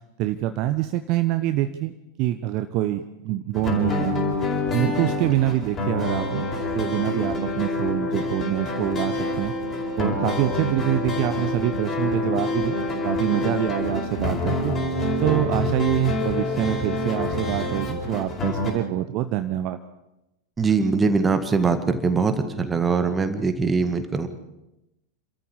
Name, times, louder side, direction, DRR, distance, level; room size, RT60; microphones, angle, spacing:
voice 1, 0.2-1.9 2.2-4.2 4.7-6.4 6.7-9.6 10.0-12.8 13.0-14.7 15.2-19.8, right 14 dB, 40° right, 10 dB, 0.9 m, -25 dB
sound 1, 3.5-18.7, left 2 dB, 25° left, 4.8 m, -26 dB
voice 2, 20.6-24.3, right 4 dB, 15° right, 9 dB, 1.9 m, -22 dB
28.5 x 13.5 x 7.2 m, 0.94 s
figure-of-eight pair, 90°, 0 cm